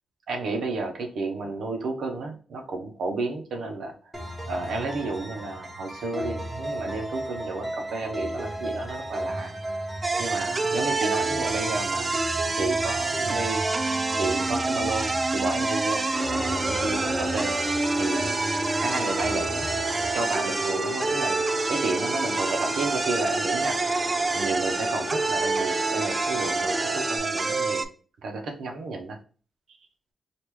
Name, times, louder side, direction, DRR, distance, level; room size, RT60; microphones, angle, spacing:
voice 1, 0.3-3.9 4.5-9.5 10.2-12.1 12.5-13.6 14.2-17.5 18.0-18.4 18.8-19.7 20.1-27.8 28.2-29.2, right 3 dB, 80° right, 3 dB, 0.7 m, -32 dB
sound 1, 4.1-20.1, right 1 dB, 15° right, 0.7 m, -34 dB
sound 2, 10.0-27.8, right 3 dB, 30° right, 0.3 m, -27 dB
sound 3, 16.1-27.2, left 3 dB, 50° left, 1.0 m, -36 dB
3.0 x 2.4 x 3.5 m, 0.39 s
cardioid pair, 85°, 0 cm